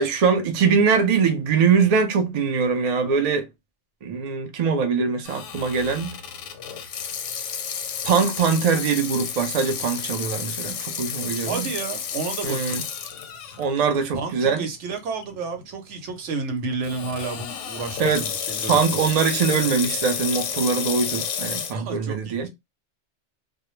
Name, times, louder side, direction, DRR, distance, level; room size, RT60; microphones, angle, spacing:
voice 1, 0.0-3.5 4.0-6.2 8.0-11.7 12.4-12.8 13.6-14.7 18.0-18.2 18.7-22.5, right 5 dB, 55° right, 0.4 m, -22 dB
Water tap faucet / Sink (filling or washing), 5.2-13.6 14.1-14.2 15.0-15.2 16.8-21.7, left 7 dB, 90° left, 0.9 m, -31 dB
voice 2, 11.4-12.8 14.1-19.1 21.7-22.5, right 4 dB, 80° right, 1.0 m, -31 dB
2.2 x 2.0 x 2.9 m
omnidirectional pair, 1.2 m